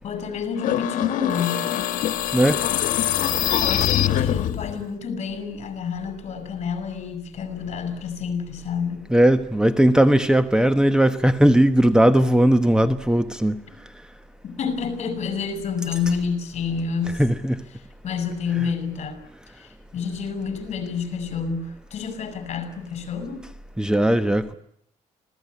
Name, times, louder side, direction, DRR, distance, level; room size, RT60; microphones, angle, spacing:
voice 1, 0.0-1.7 3.4-9.1 14.4-17.2 18.0-19.2 19.5-23.5, left 6 dB, 55° left, 6.2 m, -29 dB
sound 1, 0.6-4.8, left 12 dB, 90° left, 1.4 m, -23 dB
voice 2, 9.1-13.6 17.2-17.6 23.8-24.5, right 1 dB, 5° right, 1.1 m, -18 dB
26.0 x 18.0 x 9.9 m
cardioid pair, 130°, 13 cm